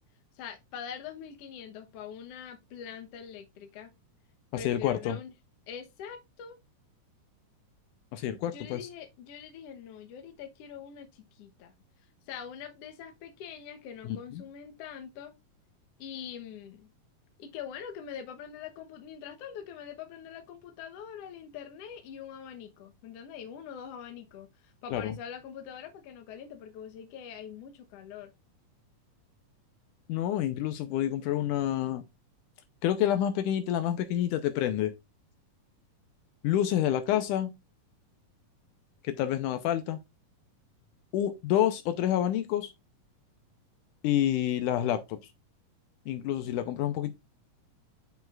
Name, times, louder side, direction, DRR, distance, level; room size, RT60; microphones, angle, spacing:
voice 1, 0.3-3.9 4.5-5.3 5.7-6.6 8.5-11.7 12.3-15.3 16.0-16.9 17.4-28.3, left 8 dB, 60° left, 1.7 m, -43 dB
voice 2, 4.5-5.2 8.1-8.9 14.1-14.2 24.9-25.2 30.1-32.0 32.8-34.9 36.4-37.5 39.0-40.0 41.1-42.7 44.0-45.2 46.1-47.1, left 11 dB, 80° left, 2.1 m, -28 dB
8.9 x 5.6 x 2.4 m
omnidirectional pair, 3.8 m